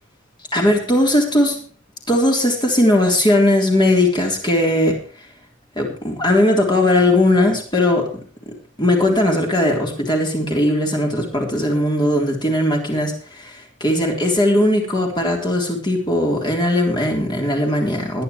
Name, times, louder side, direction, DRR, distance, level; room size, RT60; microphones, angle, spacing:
voice 1, 0.5-1.6 2.1-5.0 5.8-8.1 8.8-18.2, left 1 dB, 25° left, 0 dB, 3.7 m, -18 dB
20.5 x 11.5 x 3.2 m, 0.41 s
head